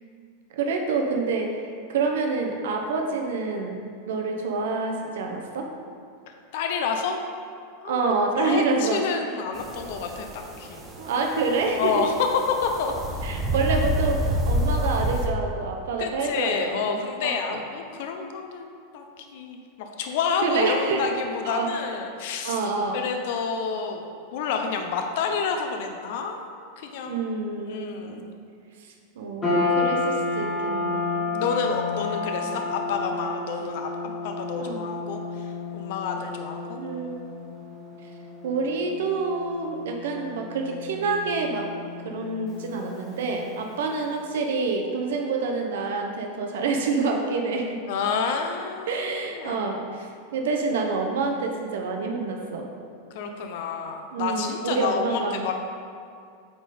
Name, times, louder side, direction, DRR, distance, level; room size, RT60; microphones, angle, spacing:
voice 1, 0.5-1.6 1.9-3.8 4.1-5.7 7.8-9.0 11.0-12.0 13.2-16.9 17.2-17.6 20.4-21.0 21.4-21.7 22.4-23.0 27.0-28.2 29.2-31.3 32.4-32.6 34.6-34.9 36.8-37.2 38.4-41.7 42.0-47.8 48.9-52.7 54.1-55.5, right 4 dB, 75° right, 2 dB, 0.8 m, -27 dB
voice 2, 6.3-7.2 7.8-8.0 8.4-10.8 11.8-13.2 16.0-22.6 22.9-26.5 26.8-27.2 27.6-28.3 31.3-35.5 35.7-36.8 47.9-49.7 53.1-55.5, left 5 dB, 55° left, 4 dB, 0.6 m, -29 dB
sound 1, 9.5-15.3, equal, 10° right, 0.7 m, -28 dB
sound 2, 29.4-43.8, left 3 dB, 15° left, 1.3 m, -31 dB
8.5 x 3.8 x 4.2 m, 2.3 s
supercardioid pair, 170°, 0 cm